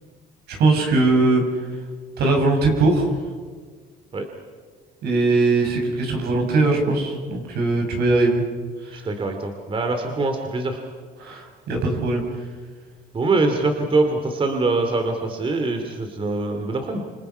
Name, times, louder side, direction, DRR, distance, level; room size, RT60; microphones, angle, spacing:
voice 1, 0.5-1.4 2.2-3.1 5.0-8.4 8.8-9.0 11.2-12.2, right 3 dB, 70° right, 3 dB, 6.0 m, -20 dB
voice 2, 8.9-10.8 13.1-17.0, right 3 dB, 30° right, 5 dB, 2.6 m, -23 dB
27.5 x 26.5 x 5.7 m, 1.6 s
cardioid pair, 110°, 17 cm